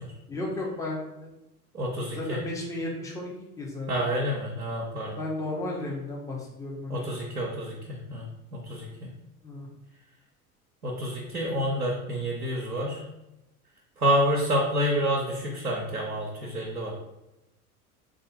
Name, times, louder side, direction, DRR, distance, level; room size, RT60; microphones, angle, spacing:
voice 1, 0.3-1.3 2.1-3.3 3.6-4.1 5.2-7.1 9.4-9.7, left 2 dB, 5° left, -3 dB, 0.8 m, -34 dB
voice 2, 1.7-2.4 3.9-5.2 6.9-9.1 10.8-13.0 14.0-16.9, equal, 90° right, -3 dB, 0.7 m, -28 dB
3.4 x 2.6 x 4.2 m, 0.93 s
figure-of-eight pair, 75°, 44 cm